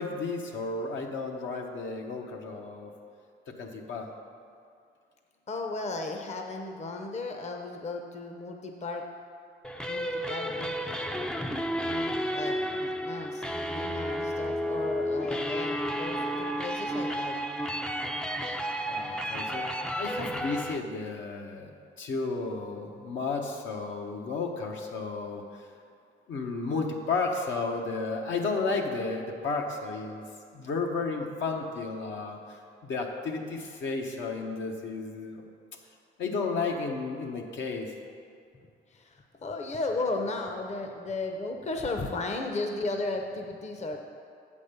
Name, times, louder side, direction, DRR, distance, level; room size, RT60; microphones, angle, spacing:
voice 1, 0.0-2.9 3.5-4.1 18.9-21.7 22.0-25.7 26.3-30.2 30.5-35.4 36.2-37.9, left 4 dB, 70° left, 1 dB, 1.1 m, -33 dB
voice 2, 5.5-9.0 9.9-10.7 11.9-17.4 38.9-44.0, left 2 dB, 35° left, 3 dB, 0.8 m, -35 dB
sound 1, 9.6-20.8, equal, 5° left, 0.4 m, -32 dB
7.8 x 5.3 x 6.7 m, 2.3 s
cardioid pair, 90°, 20 cm